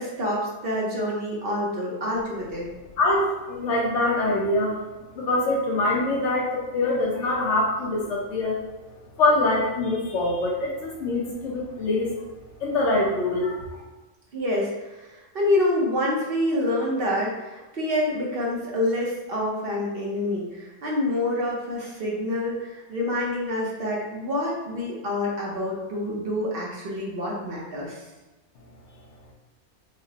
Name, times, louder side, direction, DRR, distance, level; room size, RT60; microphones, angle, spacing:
voice 1, 0.0-2.7 14.3-28.0, left 1 dB, 55° right, -3 dB, 0.9 m, -27 dB
voice 2, 3.0-4.7 5.2-8.6 9.2-12.1 12.6-13.6, left 2 dB, 70° left, -3 dB, 0.9 m, -24 dB
4.8 x 2.1 x 2.8 m, 1.1 s
omnidirectional pair, 1.3 m